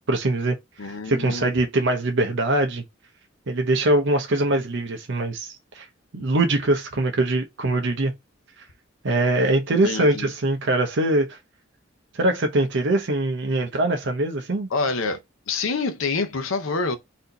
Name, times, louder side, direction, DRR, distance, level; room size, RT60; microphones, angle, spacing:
voice 1, 0.1-0.6 1.0-2.8 3.5-5.9 6.1-8.1 9.0-11.4 12.1-14.7, right 2 dB, 65° right, 0.7 m, -22 dB
voice 2, 0.8-1.5 9.8-10.3 14.7-15.2 15.5-17.0, left 4 dB, 85° left, 0.7 m, -26 dB
4.2 x 2.7 x 3.9 m
head